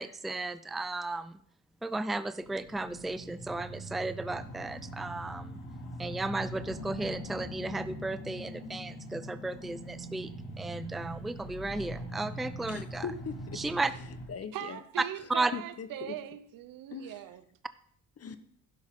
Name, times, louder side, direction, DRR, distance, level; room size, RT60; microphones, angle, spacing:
voice 1, 0.0-1.3 1.8-5.6 6.0-10.3 10.6-13.1 13.5-13.9 15.3-15.5, right 2 dB, ahead, 0.5 m, -34 dB
sound 1, 2.4-14.3, equal, 85° left, 3.0 m, -42 dB
voice 2, 12.7-13.6 14.3-14.8 15.5-16.1 16.9-17.2 18.2-18.4, left 6 dB, 45° left, 1.1 m, -40 dB
voice 3, 14.5-17.4, right 12 dB, 80° right, 1.0 m, -41 dB
11.5 x 10.5 x 3.7 m
cardioid pair, 75°, 33 cm